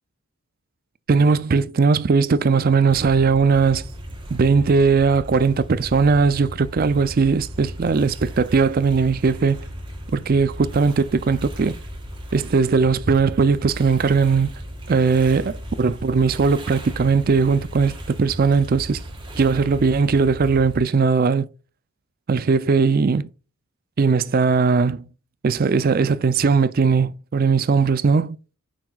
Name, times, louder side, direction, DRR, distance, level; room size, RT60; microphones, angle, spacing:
voice 1, 1.1-3.9 4.3-9.6 10.1-11.8 12.3-14.6 14.9-19.0 19.4-21.5 22.3-23.3 24.0-25.0 25.4-28.4, right 5 dB, 40° right, 0.4 m, -19 dB
sound 1, 2.9-20.8, equal, 20° right, 1.5 m, -36 dB
7.0 x 5.8 x 2.3 m
head